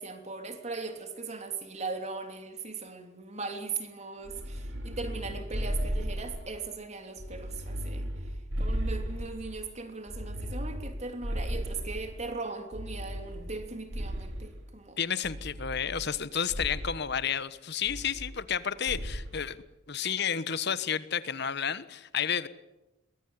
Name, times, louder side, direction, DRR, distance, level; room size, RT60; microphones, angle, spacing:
voice 1, 0.0-8.0 8.6-15.0, right 4 dB, 35° right, 6 dB, 3.1 m, -39 dB
sound 1, 4.2-6.7 7.2-9.6 10.1-12.2 12.7-14.6 15.2-16.2 16.5-17.0 17.9-18.6 18.9-19.3, equal, 65° right, 4.1 m, -35 dB
voice 2, 15.0-19.6 19.9-22.5, left 7 dB, 55° left, 14 dB, 1.2 m, -31 dB
23.0 x 21.0 x 9.8 m, 1.0 s
head